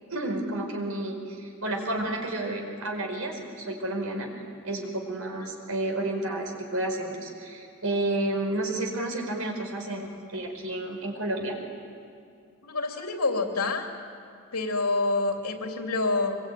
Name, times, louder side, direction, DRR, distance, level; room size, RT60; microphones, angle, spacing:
voice 1, 0.1-4.3 4.6-11.6, right 1 dB, 75° right, 2 dB, 4.9 m, -31 dB
voice 2, 12.6-13.9 14.5-16.4, left 3 dB, 90° left, 3 dB, 3.0 m, -27 dB
24.5 x 23.0 x 9.4 m, 2.4 s
head